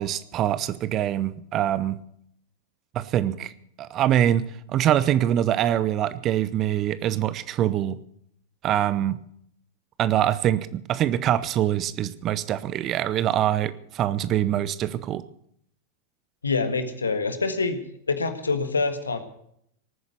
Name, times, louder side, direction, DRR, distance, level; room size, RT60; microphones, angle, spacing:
voice 1, 0.0-2.0 2.9-3.5 3.8-4.5 4.7-8.0 8.6-9.2 10.0-15.2, right 11 dB, 35° right, 16 dB, 0.7 m, -24 dB
voice 2, 16.4-17.8 18.1-19.2, left 4 dB, 75° left, 9 dB, 1.6 m, -25 dB
19.0 x 9.4 x 6.8 m, 0.69 s
figure-of-eight pair, 90°, 0 cm